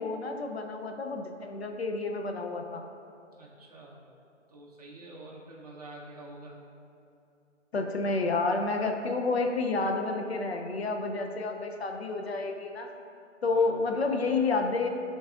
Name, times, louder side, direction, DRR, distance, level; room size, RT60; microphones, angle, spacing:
voice 1, 0.0-2.8 7.7-12.9 13.4-14.9, left 3 dB, 55° left, 3 dB, 0.6 m, -30 dB
voice 2, 3.3-4.0 4.5-6.6 13.4-13.8, right 2 dB, 30° right, -3 dB, 0.8 m, -47 dB
10.5 x 3.9 x 2.4 m, 2.7 s
hypercardioid pair, 165°, 37 cm